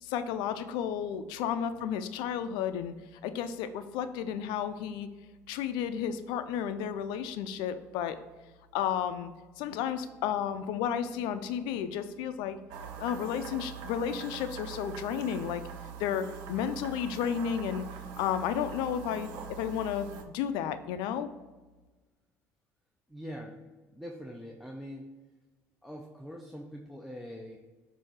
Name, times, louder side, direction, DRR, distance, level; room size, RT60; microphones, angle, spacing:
voice 1, 0.0-2.9 3.2-5.1 5.5-8.2 8.7-12.6 13.0-15.6 16.0-17.9 18.2-20.1 20.3-21.3, left 8 dB, 80° left, 10 dB, 0.5 m, -32 dB
sound 1, 12.7-20.2, right 6 dB, 75° right, 0.6 m, -43 dB
voice 2, 23.1-25.1 25.8-27.6, equal, ahead, 0 dB, 0.7 m, -43 dB
7.0 x 2.7 x 4.8 m, 1.3 s
supercardioid pair, 75°, 8 cm